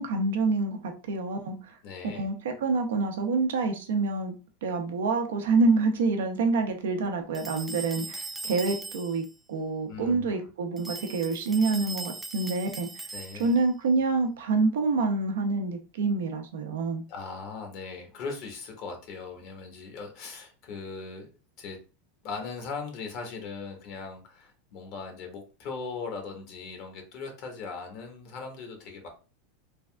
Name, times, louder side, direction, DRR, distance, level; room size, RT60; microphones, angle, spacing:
voice 1, 0.0-1.6 2.2-4.3 4.6-13.0 13.4-17.0, right 3 dB, 80° right, 0.6 m, -27 dB
voice 2, 1.8-2.3 9.9-10.5 13.1-13.5 17.1-21.3 21.6-21.8 22.2-29.1, left 4 dB, 55° left, 1.0 m, -39 dB
sound 1, 7.3-9.3 10.8-13.6, right 3 dB, 10° right, 0.3 m, -39 dB
3.3 x 2.4 x 2.3 m
hypercardioid pair, 110°, 0 cm